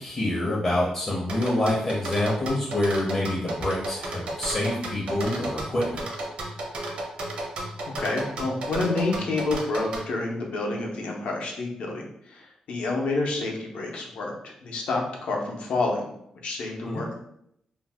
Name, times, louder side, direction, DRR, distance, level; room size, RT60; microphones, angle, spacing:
voice 1, 0.0-6.0 16.8-17.0, left 1 dB, 25° left, -4 dB, 0.5 m, -26 dB
sound 1, 1.3-10.1, right 1 dB, 60° right, 0.6 m, -32 dB
voice 2, 8.0-14.3 14.6-16.1 16.4-17.2, left 3 dB, 75° left, 0 dB, 0.6 m, -28 dB
2.6 x 2.1 x 3.3 m, 0.74 s
wide cardioid pair, 165°, 2 cm